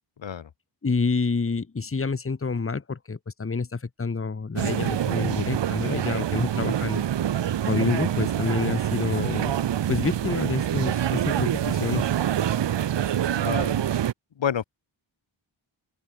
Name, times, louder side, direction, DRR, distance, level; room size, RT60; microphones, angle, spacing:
voice 1, 0.8-7.0 7.6-9.5 9.9-12.1, left 4 dB, 30° left, 1.4 m, -28 dB
sound 1, 4.6-14.1, right 10 dB, 65° right, 0.8 m, -26 dB
voice 2, 13.3-13.8 14.4-14.6, left 8 dB, 70° left, 1.4 m, -29 dB
open air
wide cardioid pair, 85°, 46 cm